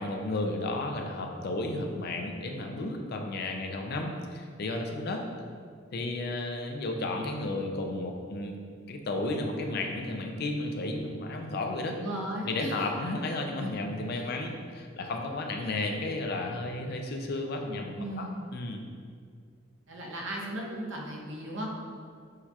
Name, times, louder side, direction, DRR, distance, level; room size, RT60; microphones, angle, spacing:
voice 1, 0.0-5.2 5.9-8.6 8.9-12.0 12.5-18.3 18.5-18.8, left 2 dB, 55° left, 3 dB, 0.4 m, -33 dB
voice 2, 12.0-12.9 14.2-14.3 18.0-18.4 19.9-21.7, right 1 dB, 70° right, -2 dB, 0.7 m, -36 dB
6.4 x 2.3 x 2.8 m, 2.1 s
head